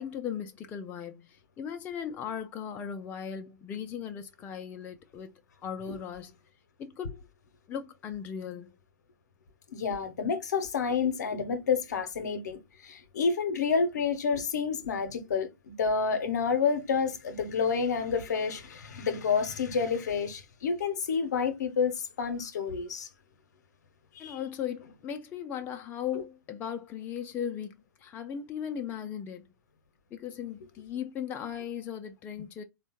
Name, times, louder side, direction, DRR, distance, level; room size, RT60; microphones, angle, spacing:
voice 1, 0.0-5.3 5.6-6.3 6.8-7.2 7.7-8.7 24.2-29.5 30.1-32.6, left 8 dB, 15° left, 0.3 m, -37 dB
voice 2, 9.7-23.1 24.1-24.4, left 5 dB, 65° left, 0.7 m, -29 dB
3.4 x 2.1 x 2.9 m
figure-of-eight pair, 115°, 10 cm